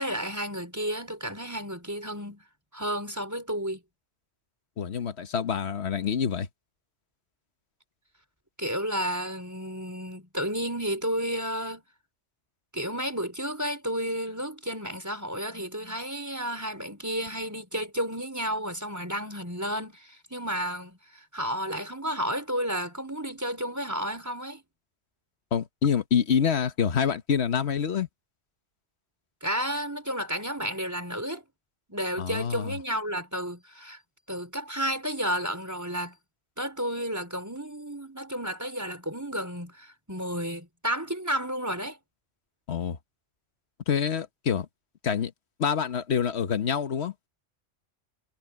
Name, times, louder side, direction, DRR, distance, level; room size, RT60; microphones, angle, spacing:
voice 1, 0.0-2.4 2.7-3.8 8.6-11.8 12.7-24.6 29.4-31.4 31.9-34.0 34.3-36.2 36.6-42.0, equal, 15° right, 4.2 m, -32 dB
voice 2, 4.8-6.5 25.5-28.1 32.2-32.8 42.7-43.0 43.9-44.7 45.0-45.3 45.6-47.1, left 7 dB, 65° left, 1.4 m, -26 dB
omnidirectional pair, 1.2 m